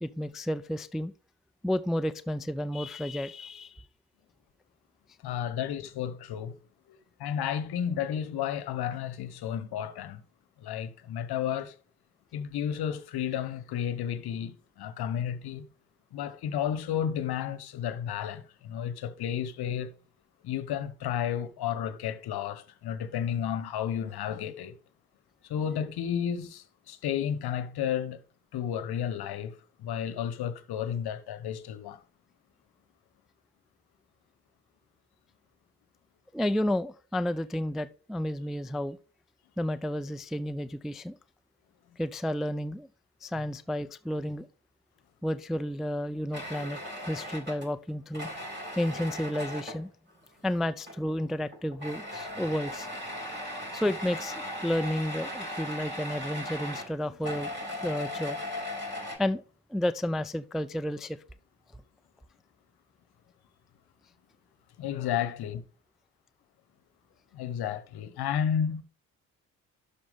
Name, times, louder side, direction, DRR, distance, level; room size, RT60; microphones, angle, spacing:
voice 1, 0.0-1.1 1.6-3.7 36.3-39.0 39.6-41.2 42.0-42.9 43.2-44.5 45.2-46.8 47.1-48.3 48.8-49.9 50.4-52.9 53.7-58.4 59.2-59.4 59.7-61.2, left 1 dB, ahead, 0.4 m, -31 dB
voice 2, 5.2-6.6 6.9-10.2 10.6-11.7 12.3-15.7 16.1-19.9 20.4-24.7 25.4-28.2 28.5-32.0 64.8-65.6 67.3-68.8, left 9 dB, 55° left, 1.1 m, -32 dB
sound 1, 46.3-49.8 50.8-51.2 51.5-59.2, left 1 dB, 25° right, 4.8 m, -38 dB
12.0 x 4.4 x 3.5 m
hypercardioid pair, 45°, 45 cm